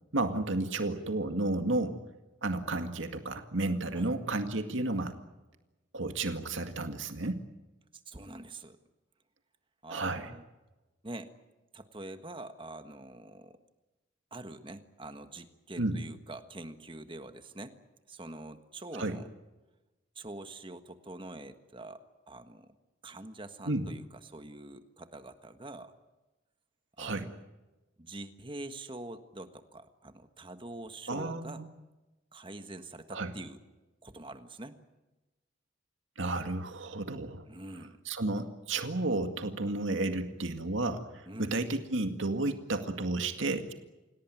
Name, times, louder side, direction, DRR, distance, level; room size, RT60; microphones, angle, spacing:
voice 1, 0.1-2.0 2.4-5.1 5.9-7.4 9.9-10.3 15.8-16.0 18.9-19.2 23.7-23.9 27.0-27.3 31.1-31.7 33.1-33.3 36.2-37.4 38.1-41.0 41.4-43.7, right 2 dB, 80° right, 6 dB, 2.1 m, -32 dB
voice 2, 7.9-8.8 9.8-10.4 11.0-11.3 11.7-13.6 14.3-17.8 18.1-19.3 20.1-22.7 23.0-25.9 27.0-27.3 28.0-31.6 32.3-33.6 34.0-34.8 37.5-38.0 41.3-41.6, right 2 dB, 25° right, 8 dB, 1.5 m, -45 dB
27.5 x 17.5 x 9.3 m, 1.1 s
head